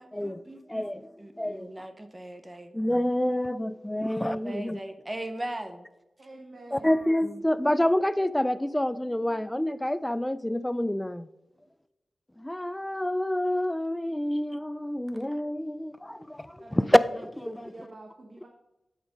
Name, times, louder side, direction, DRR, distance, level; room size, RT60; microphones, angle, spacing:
voice 1, 0.0-2.7 4.4-5.9 14.3-14.4, right 1 dB, 20° right, 9 dB, 0.6 m, -39 dB
voice 2, 0.7-1.9 2.7-4.8 6.7-11.3 12.4-17.0 17.4-17.6, left 1 dB, 10° left, 15 dB, 0.3 m, -27 dB
voice 3, 6.2-7.1 16.6-18.5, right 2 dB, 55° right, 1 dB, 1.1 m, -47 dB
8.1 x 4.9 x 5.2 m, 1.0 s
wide cardioid pair, 70°, 0 cm